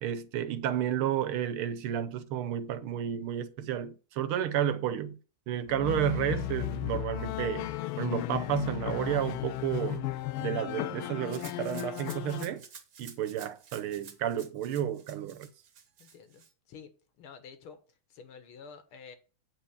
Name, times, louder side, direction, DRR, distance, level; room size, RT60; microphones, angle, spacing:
voice 1, 0.0-5.2 5.5-7.7 8.0-10.1 10.4-12.6 13.0-15.5, right 10 dB, 80° right, 1.7 m, -31 dB
sound 1, 5.7-12.4, left 15 dB, 90° left, 1.5 m, -35 dB
Rattle (instrument), 11.3-16.5, right 6 dB, 50° right, 1.4 m, -51 dB
voice 2, 16.0-16.9 17.2-17.8 18.1-19.2, left 6 dB, 75° left, 2.1 m, -49 dB
8.5 x 4.5 x 7.0 m
omnidirectional pair, 2.4 m